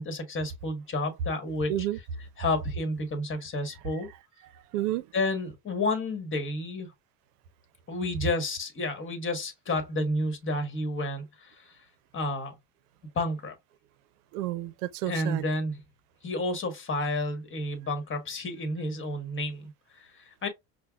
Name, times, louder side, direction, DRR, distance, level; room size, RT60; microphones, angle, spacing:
voice 1, 0.0-1.7 2.4-4.1 5.1-6.9 7.9-11.7 12.1-12.5 13.1-13.6 15.0-15.8 16.2-20.5, left 2 dB, 25° left, 1.2 m, -31 dB
voice 2, 4.7-5.1 14.3-15.4, right 14 dB, 75° right, 0.6 m, -30 dB
5.6 x 2.2 x 2.3 m
supercardioid pair, 110°, 46 cm